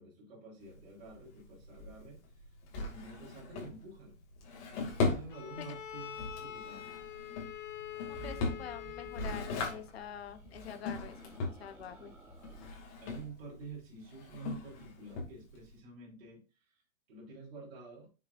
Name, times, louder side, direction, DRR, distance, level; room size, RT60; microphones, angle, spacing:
voice 1, 0.0-2.2 2.7-4.2 4.7-7.0 13.0-16.4 16.7-16.8 17.1-18.1, right 2 dB, 45° right, 3.6 m, -49 dB
Drawer open or close, 0.6-15.8, left 3 dB, 25° left, 2.3 m, -40 dB
Bowed string instrument, 5.3-9.9, left 10 dB, 65° left, 2.2 m, -45 dB
sound 1, 8.0-9.2 10.1-12.7, right 5 dB, 10° right, 1.0 m, -53 dB
voice 2, 8.1-12.1, left 8 dB, 50° left, 1.2 m, -46 dB
9.7 x 6.4 x 2.5 m
hypercardioid pair, 175°, 41 cm